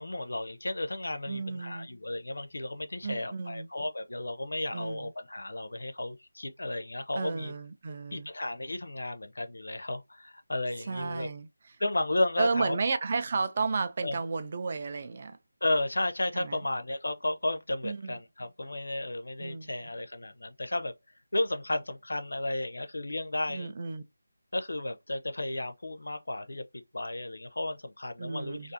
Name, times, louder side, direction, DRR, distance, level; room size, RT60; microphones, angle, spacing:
voice 1, 0.0-7.5 8.1-11.3 11.8-12.7 14.0-14.1 15.6-20.9 21.3-23.7 24.5-26.6 26.9-28.7, left 1 dB, 75° left, 0.5 m, -33 dB
voice 2, 1.3-1.9 3.0-3.7 4.7-5.1 7.1-8.3 10.8-11.8 12.4-15.4 16.3-16.7 17.8-18.2 19.4-19.7 23.5-24.0 28.2-28.7, right 4 dB, 35° right, 0.3 m, -33 dB
2.5 x 2.4 x 2.6 m
figure-of-eight pair, 165°, 0 cm